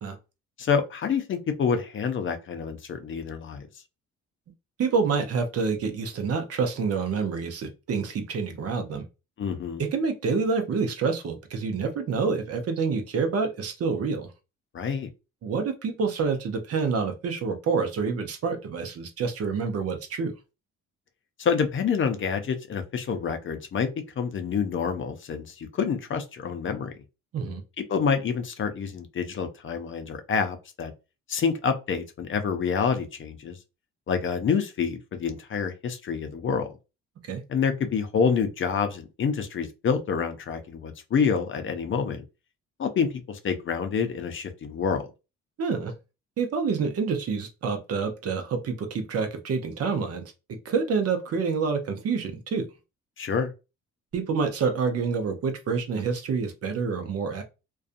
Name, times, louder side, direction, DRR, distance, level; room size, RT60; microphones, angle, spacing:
voice 1, 0.6-3.7 9.4-9.8 14.7-15.1 21.4-23.9 24.2-26.9 27.9-30.9 31.3-33.6 34.1-36.7 37.5-42.2 42.8-45.1 53.2-53.5, left 6 dB, 40° left, 0.5 m, -27 dB
voice 2, 4.8-9.0 9.8-14.3 15.4-20.3 27.3-27.6 37.2-37.4 45.6-45.9 46.4-50.2 50.6-52.6 54.1-57.4, right 5 dB, 50° right, 0.6 m, -27 dB
2.5 x 2.3 x 2.5 m
cardioid pair, 90°, 30 cm